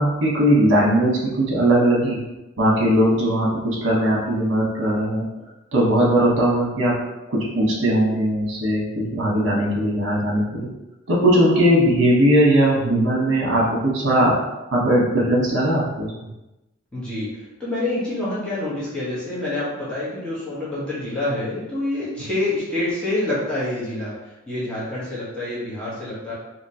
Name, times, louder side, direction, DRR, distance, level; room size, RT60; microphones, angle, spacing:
voice 1, 0.0-2.2 2.6-5.2 5.7-7.0 7.3-10.7 11.1-14.4 14.7-16.1, right 1 dB, 60° right, -4 dB, 1.0 m, -19 dB
voice 2, 16.9-26.3, left 2 dB, 5° left, -10 dB, 1.0 m, -27 dB
2.9 x 2.8 x 2.7 m, 1.0 s
head